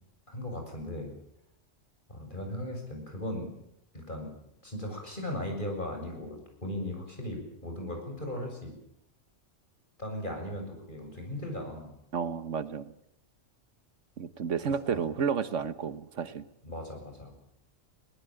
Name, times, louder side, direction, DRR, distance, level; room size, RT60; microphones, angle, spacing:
voice 1, 0.3-1.1 2.1-3.5 3.9-4.3 4.6-8.7 10.0-11.9 14.9-15.0 16.6-17.3, left 1 dB, 40° left, 2 dB, 7.3 m, -37 dB
voice 2, 12.1-12.9 14.2-16.4, right 6 dB, 80° right, 13 dB, 1.5 m, -31 dB
21.5 x 19.5 x 8.9 m, 0.78 s
omnidirectional pair, 1.3 m